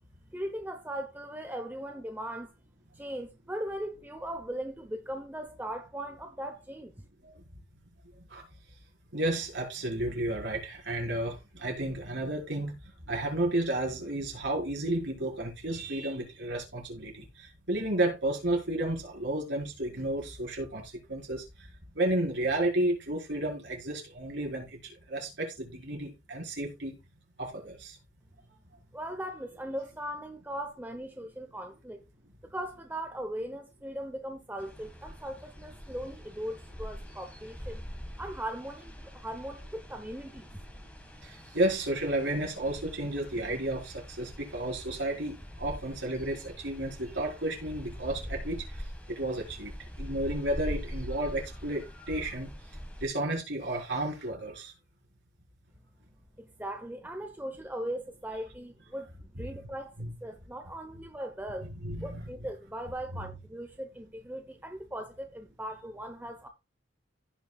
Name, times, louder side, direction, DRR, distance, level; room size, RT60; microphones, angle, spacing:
voice 1, 0.3-2.5 3.0-6.9 28.9-32.0 32.5-37.8 38.2-40.5 56.4-61.7 62.0-66.5, right 1 dB, 10° right, 0.8 m, -39 dB
voice 2, 9.1-12.7 13.1-21.4 21.9-24.8 25.1-27.0 27.4-28.0 41.2-48.6 49.1-49.7 50.0-52.5 53.0-54.7 60.0-60.1 61.6-62.3 63.1-63.2, right 1 dB, 65° right, 4.7 m, -32 dB
sound 1, 34.6-53.1, equal, 5° left, 1.7 m, -43 dB
16.0 x 6.2 x 2.3 m
head